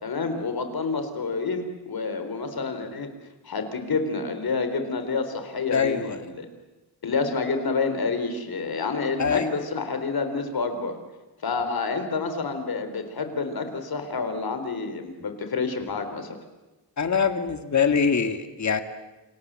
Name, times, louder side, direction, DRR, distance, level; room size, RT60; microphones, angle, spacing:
voice 1, 0.0-3.1 3.4-6.5 7.0-10.9 11.4-16.3, left 4 dB, 55° left, 8 dB, 4.1 m, -28 dB
voice 2, 5.7-6.3 9.2-9.6 17.0-18.8, left 6 dB, 40° left, 8 dB, 2.0 m, -24 dB
29.0 x 26.5 x 7.7 m, 1.1 s
wide cardioid pair, 135°, 42 cm